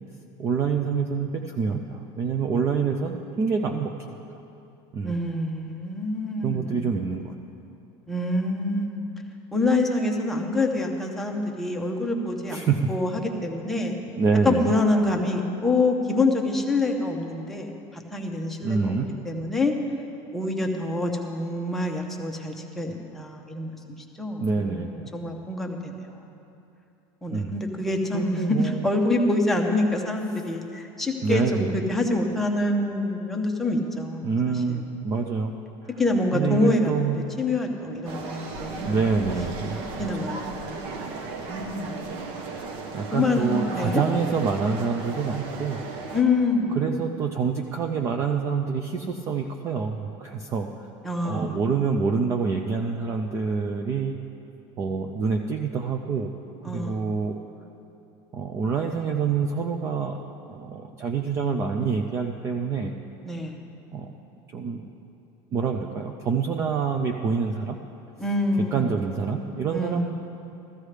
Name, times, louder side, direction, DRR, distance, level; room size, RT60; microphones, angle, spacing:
voice 1, 0.4-4.2 4.9-5.2 6.4-7.3 12.5-12.8 14.2-14.7 18.6-19.1 24.4-25.0 27.3-27.6 28.1-28.9 31.2-31.8 34.2-35.5 36.3-37.2 38.8-40.3 42.4-45.8 46.7-50.7 51.2-54.2 54.8-56.3 56.7-57.4 58.3-60.2 60.5-62.9 63.9-64.1 64.5-64.9 65.5-67.8 68.7-70.1, right 5 dB, 25° right, 4 dB, 0.4 m, -26 dB
voice 2, 5.0-6.9 8.1-9.0 9.5-12.6 12.9-13.9 14.4-18.9 19.2-19.7 20.3-23.8 24.2-25.9 27.2-34.9 36.0-39.0 40.0-42.2 43.1-44.0 46.1-47.0 51.0-51.6 56.6-57.1 63.2-63.6 68.2-68.9 69.7-70.1, left 2 dB, ahead, 0 dB, 0.7 m, -26 dB
sound 1, 38.0-46.2, right 3 dB, 55° right, 0.9 m, -35 dB
15.5 x 14.0 x 3.3 m, 2.8 s
cardioid pair, 175°, 12 cm